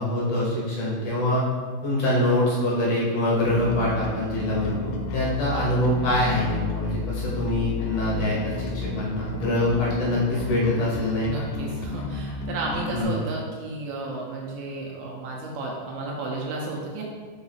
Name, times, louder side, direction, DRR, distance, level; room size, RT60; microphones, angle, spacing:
voice 1, 0.0-1.4 1.8-11.4 12.9-13.2, left 1 dB, 70° left, -6 dB, 1.6 m, -24 dB
Bass guitar, 3.4-13.0, left 3 dB, 90° left, 1.8 m, -32 dB
voice 2, 11.3-17.0, right 2 dB, 85° right, -2 dB, 2.6 m, -33 dB
4.8 x 4.8 x 4.2 m, 1.5 s
omnidirectional pair, 4.4 m